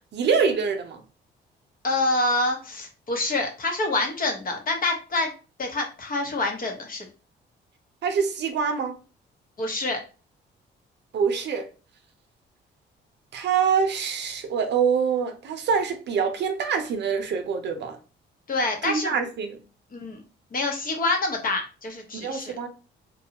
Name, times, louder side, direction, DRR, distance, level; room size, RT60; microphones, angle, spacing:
voice 1, 0.1-1.0 8.0-9.0 11.1-11.7 13.3-18.0 18.8-19.6 22.2-22.7, right 6 dB, 60° right, 0.6 m, -25 dB
voice 2, 1.8-5.3 5.6-7.0 9.6-10.0 18.5-19.1 19.9-20.2 20.5-22.5, left 2 dB, 45° left, 0.9 m, -26 dB
2.7 x 2.3 x 2.8 m
cardioid pair, 90°, 20 cm